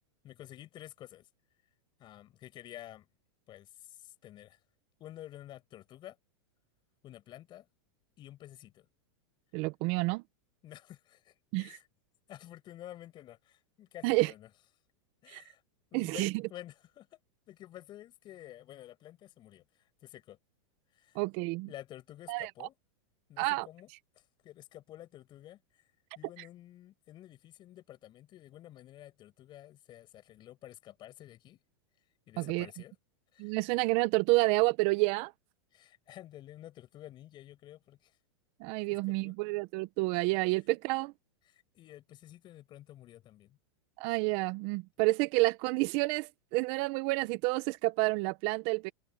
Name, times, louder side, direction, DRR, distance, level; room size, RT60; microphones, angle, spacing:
voice 1, 0.2-1.3 2.0-3.1 3.5-4.6 5.0-6.2 7.0-7.7 8.2-8.9 10.6-11.9 12.3-14.5 15.2-15.6 15.9-17.2 17.5-20.4 20.9-21.2 21.7-22.7 23.3-23.9 24.2-25.6 26.2-31.6 32.3-32.9 33.3-33.6 35.7-38.2 38.9-39.3 41.5-43.6, left 13 dB, 30° left, 5.6 m, -50 dB
voice 2, 9.5-10.2 11.5-11.8 14.0-14.3 15.3-15.4 15.9-16.3 21.1-21.7 22.3-22.7 23.4-23.7 32.4-32.7 33.4-35.3 38.6-41.1 44.0-48.9, right 23 dB, 40° right, 0.7 m, -29 dB
supercardioid pair, 145°, 15 cm